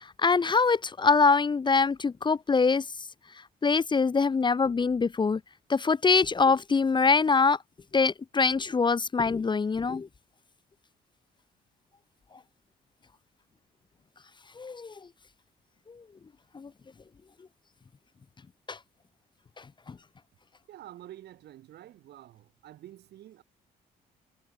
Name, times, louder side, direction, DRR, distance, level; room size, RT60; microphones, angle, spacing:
voice 1, 0.2-2.8 3.6-5.4 5.7-7.6 7.9-10.1 14.6-14.9 16.6-16.7 18.7-18.8, left 4 dB, 25° left, 0.6 m, -24 dB
voice 2, 20.7-23.4, right 13 dB, 75° right, 4.5 m, -48 dB
supercardioid pair, 70°, 17 cm